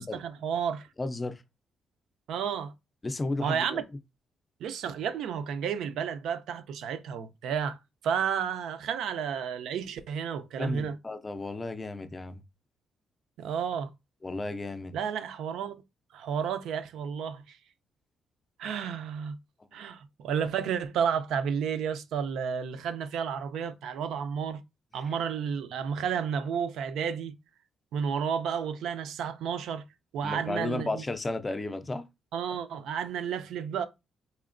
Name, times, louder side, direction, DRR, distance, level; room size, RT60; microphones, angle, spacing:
voice 1, 0.0-0.9 2.3-2.7 3.4-3.8 4.6-7.8 8.0-11.0 13.4-13.9 14.9-15.7 16.1-17.6 18.6-19.4 19.7-24.6 24.9-27.3 27.9-29.8 30.1-31.0 32.3-33.8, right 7 dB, 80° right, 0.4 m, -31 dB
voice 2, 1.0-1.4 3.0-3.8 10.6-12.4 14.2-15.0 30.2-32.1, left 2 dB, 20° left, 0.4 m, -33 dB
4.2 x 2.8 x 2.5 m
cardioid pair, 145°, 0 cm